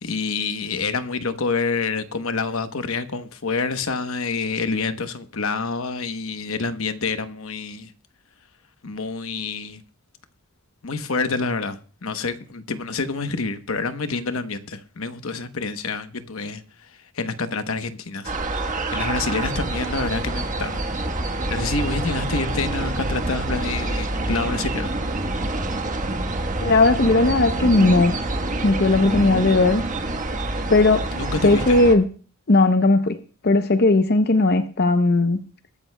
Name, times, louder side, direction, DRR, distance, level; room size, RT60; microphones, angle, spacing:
voice 1, 0.0-7.9 8.8-9.8 10.8-16.6 17.1-18.3 18.9-20.8 21.5-25.0 31.1-31.8, left 4 dB, 75° left, 1.0 m, -27 dB
sound 1, 18.2-31.9, right 2 dB, 35° right, 1.3 m, -26 dB
voice 2, 26.6-28.2 28.6-29.8 30.7-31.0 31.4-32.0 32.5-33.2 33.4-35.4, left 2 dB, 50° left, 0.7 m, -17 dB
22.5 x 12.0 x 2.2 m
head